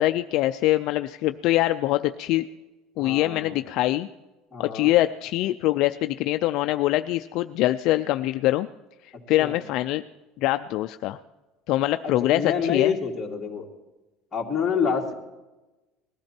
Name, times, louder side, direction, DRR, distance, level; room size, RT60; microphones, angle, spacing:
voice 1, 0.0-2.5 3.0-4.1 4.6-8.7 9.3-10.0 10.4-11.2 11.7-12.9, left 16 dB, 50° left, 9 dB, 0.4 m, -23 dB
voice 2, 3.0-3.6 4.5-4.9 9.4-9.6 12.0-13.6 14.3-15.1, left 6 dB, 10° left, -3 dB, 2.4 m, -27 dB
20.0 x 13.5 x 4.4 m, 1.1 s
cardioid pair, 165°, 0 cm